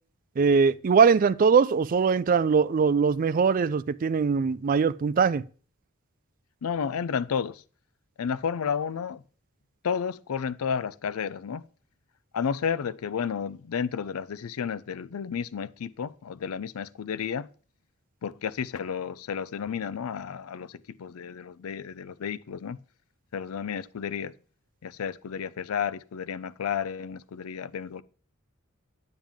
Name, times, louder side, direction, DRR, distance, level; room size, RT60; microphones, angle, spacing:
voice 1, 0.4-5.4, right 5 dB, 40° right, 0.3 m, -21 dB
voice 2, 6.6-7.6 8.2-9.2 9.8-11.7 12.3-17.5 18.2-22.8 23.3-24.3 24.8-28.0, left 7 dB, 85° left, 0.4 m, -32 dB
9.0 x 8.9 x 3.6 m
head